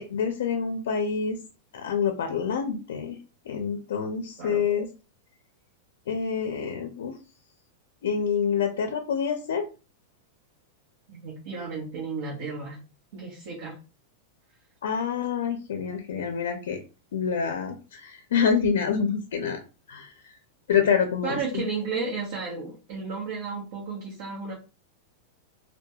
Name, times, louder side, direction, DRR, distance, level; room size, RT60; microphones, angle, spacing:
voice 1, 0.0-1.4 1.7-3.2 3.5-4.9 6.1-7.2 8.0-9.6 14.8-16.8 17.1-19.6 19.9-20.4 20.7-21.6, left 6 dB, 90° left, 6 dB, 0.4 m, -27 dB
voice 2, 11.1-12.8 13.1-13.8 21.2-24.5, right 4 dB, 50° right, -4 dB, 0.9 m, -33 dB
2.3 x 2.1 x 2.7 m, 0.33 s
supercardioid pair, 180°, 0 cm